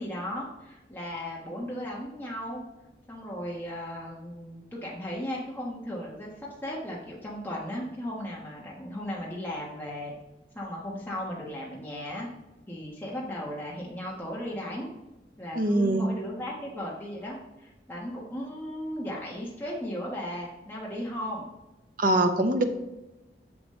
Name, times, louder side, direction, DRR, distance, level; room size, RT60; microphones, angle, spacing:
voice 1, 0.0-2.6 3.1-6.3 6.6-10.1 10.5-12.3 12.7-14.9 15.4-21.5, equal, 10° left, -5 dB, 1.3 m, -36 dB
voice 2, 15.5-16.1 22.0-22.6, right 1 dB, 50° right, 6 dB, 0.8 m, -23 dB
7.2 x 7.1 x 3.2 m, 1.0 s
head